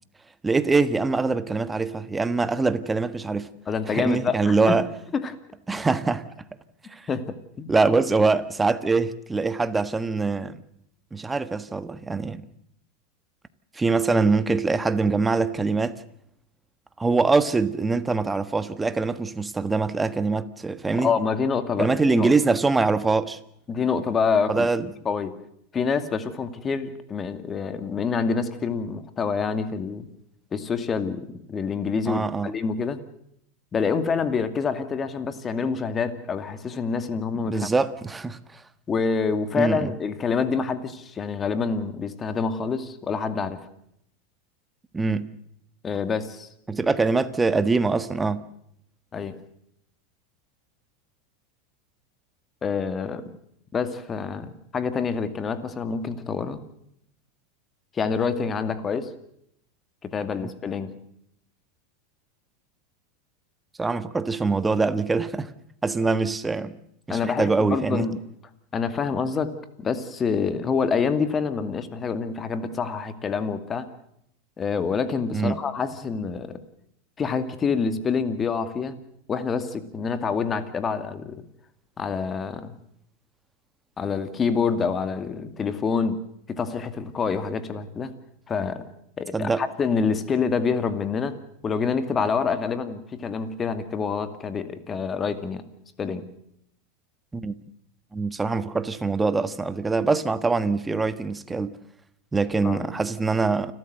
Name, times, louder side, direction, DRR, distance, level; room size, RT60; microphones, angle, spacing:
voice 1, 0.4-3.5 3.9-4.8 5.7-6.3 6.9-7.1 7.7-10.6 11.1-12.4 13.7-16.0 17.0-21.1 21.8-23.4 24.5-24.9 32.1-32.5 37.4-38.6 39.6-39.9 44.9-45.3 46.7-48.4 63.8-65.5 65.8-66.8 67.1-68.1 75.3-75.6 89.3-89.6 97.3-97.5 98.1-101.8 102.3-103.7, right 3 dB, 15° right, 1.4 m, -23 dB
voice 2, 3.7-4.8 5.1-5.3 7.1-7.2 7.6-7.7 20.9-22.3 23.7-24.7 25.1-25.4 25.7-30.1 30.5-33.0 33.7-37.7 38.9-43.6 45.8-46.5 49.1-49.4 52.6-53.2 53.7-56.6 57.9-59.1 60.0-60.9 67.1-68.2 68.7-73.9 74.6-76.6 77.2-79.0 79.3-81.4 82.0-82.8 84.0-86.2 86.5-88.1 88.5-88.9 89.2-91.4 91.6-95.6 96.0-96.3 102.6-102.9, left 5 dB, 25° left, 2.3 m, -27 dB
29.0 x 13.0 x 7.8 m
hypercardioid pair, 95°, 0 cm